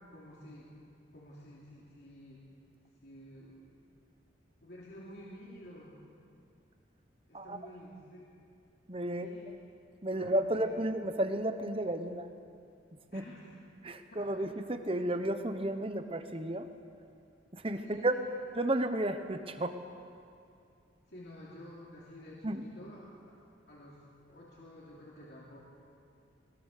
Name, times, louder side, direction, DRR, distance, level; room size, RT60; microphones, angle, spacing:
voice 1, 0.1-0.7 1.1-2.4 3.0-3.7 4.6-6.0 7.3-8.3 9.1-9.5 10.1-10.7 13.1-13.6 14.0-14.5 17.8-18.3 21.1-23.4 23.7-24.0 24.3-25.6, left 1 dB, 55° left, -6 dB, 3.1 m, -51 dB
voice 2, 8.9-9.5 10.0-12.3 13.1-13.2 13.8-16.7 17.5-18.3 18.5-19.8 22.4-22.6, right 1 dB, 30° right, 8 dB, 1.0 m, -33 dB
21.0 x 21.0 x 6.7 m, 2.5 s
head